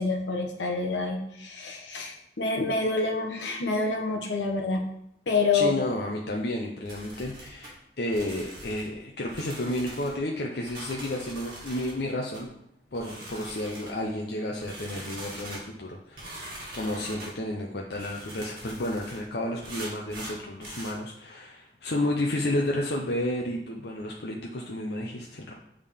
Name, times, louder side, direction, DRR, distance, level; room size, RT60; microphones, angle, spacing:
voice 1, 0.0-4.8 5.3-5.7 16.8-17.0, left 3 dB, 85° left, 2 dB, 1.1 m, -27 dB
voice 2, 5.5-12.5 12.9-16.3 16.7-25.5, left 1 dB, 60° left, -1 dB, 0.7 m, -31 dB
sound 1, 6.8-7.7 8.1-8.9 9.3-10.1 10.7-11.9 12.3-12.4 12.9-14.0 14.6-15.6 16.2-17.3 17.9-19.2 19.6-20.9, right 1 dB, 50° right, 2.1 m, -42 dB
8.3 x 3.7 x 3.5 m, 0.73 s
head